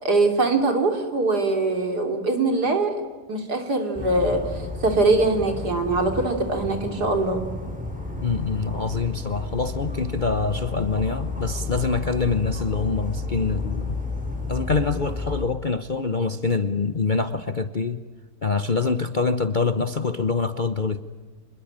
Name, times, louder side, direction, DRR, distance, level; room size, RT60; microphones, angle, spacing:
voice 1, 0.0-3.0 3.3-7.4, right 2 dB, 70° right, 5 dB, 3.7 m, -22 dB
Dog, 3.9-15.5, left 2 dB, 5° right, 4.1 m, -32 dB
voice 2, 8.2-14.0 14.5-18.0 18.4-21.0, left 4 dB, 40° left, 11 dB, 0.7 m, -25 dB
26.5 x 21.5 x 8.8 m, 1.4 s
omnidirectional pair, 1.8 m